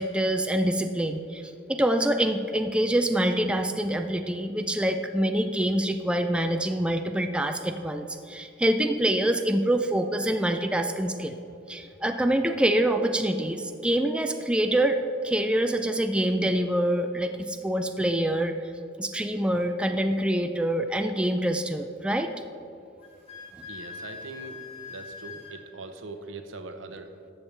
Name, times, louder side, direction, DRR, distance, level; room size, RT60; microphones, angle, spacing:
voice 1, 0.0-11.4 11.7-18.5 19.0-22.3, right 1 dB, 5° right, 6 dB, 0.3 m, -25 dB
Wind instrument woodwind instrument, 23.0-25.6, left 5 dB, 30° left, 1.4 m, -42 dB
voice 2, 23.7-24.6 24.9-27.1, right 3 dB, 80° right, 7 dB, 0.8 m, -41 dB
13.5 x 7.1 x 3.3 m, 2.6 s
head